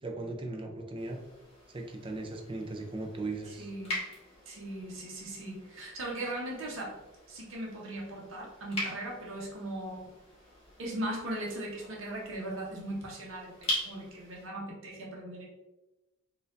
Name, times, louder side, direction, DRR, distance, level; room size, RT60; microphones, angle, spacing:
voice 1, 0.0-1.2 1.7-3.7, right 2 dB, 25° right, 2 dB, 0.5 m, -38 dB
sound 1, 0.9-14.5, left 1 dB, 30° left, 1.2 m, -43 dB
voice 2, 3.4-4.0 4.5-7.0 7.3-10.0 10.8-15.4, right 1 dB, 70° right, -2 dB, 0.9 m, -38 dB
4.2 x 2.5 x 2.6 m, 1.0 s
head